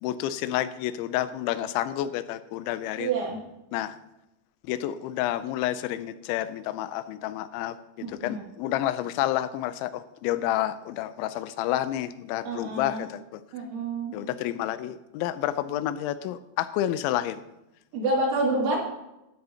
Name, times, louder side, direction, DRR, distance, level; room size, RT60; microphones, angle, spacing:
voice 1, 0.0-3.1 3.7-4.0 4.6-13.4 14.1-17.4, left 13 dB, 85° left, 13 dB, 3.0 m, -29 dB
voice 2, 3.0-3.4 8.0-8.4 12.5-13.0 13.5-14.2 17.9-18.8, right 2 dB, 85° right, -2 dB, 5.0 m, -28 dB
13.0 x 12.0 x 2.9 m, 0.91 s
omnidirectional pair, 5.3 m